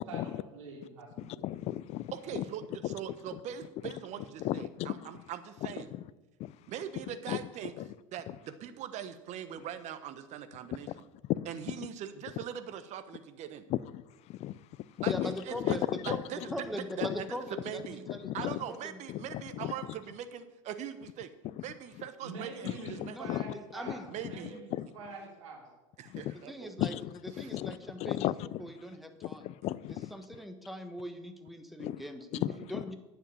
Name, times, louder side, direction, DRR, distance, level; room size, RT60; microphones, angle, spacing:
voice 1, 0.1-1.5 22.2-24.7 24.9-25.7, right 3 dB, 75° right, 3.0 m, -45 dB
voice 2, 1.2-2.4 2.8-2.9 3.3-3.4 3.8-3.9 4.4-5.1 5.6-6.1 6.4-6.6 7.3-7.5 7.8-7.9 8.3-8.4 11.2-11.5 11.8-11.9 12.4-12.5 13.7-16.2 17.0-17.1 18.1-18.6 19.1-19.7 21.4-21.6 22.6-23.5 24.8-24.9 26.1-26.3 26.8-28.6 29.2-30.1 31.8-32.0 32.4-32.8, left 14 dB, 40° left, 0.5 m, -35 dB
voice 3, 2.1-5.9 6.7-7.7 8.1-10.9 11.5-13.6 15.0-15.8 16.3-16.4 17.0-17.3 17.5-18.0 18.3-21.3 21.6-23.4 24.1-24.5 26.0-26.7 27.4-27.5, right 9 dB, 45° right, 1.2 m, -41 dB
voice 4, 15.1-18.3 18.7-19.0 23.1-24.1 26.5-26.9 27.2-28.3 28.6-29.5 29.9-32.4 32.7-32.9, equal, ahead, 1.4 m, -41 dB
9.9 x 7.5 x 7.0 m
hypercardioid pair, 80°, 17 cm